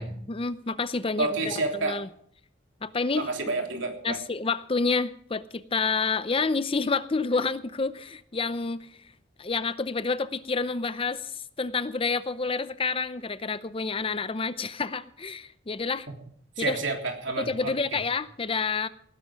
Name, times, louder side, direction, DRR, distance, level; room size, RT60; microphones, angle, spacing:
voice 1, 0.3-2.1 2.8-3.3 4.0-8.9 9.4-16.1 16.6-16.8 17.4-18.9, left 4 dB, 30° left, 14 dB, 0.6 m, -29 dB
voice 2, 1.2-2.0 3.1-4.2 16.6-18.0, right 3 dB, 70° right, 3 dB, 3.3 m, -29 dB
18.0 x 11.0 x 5.0 m, 0.63 s
head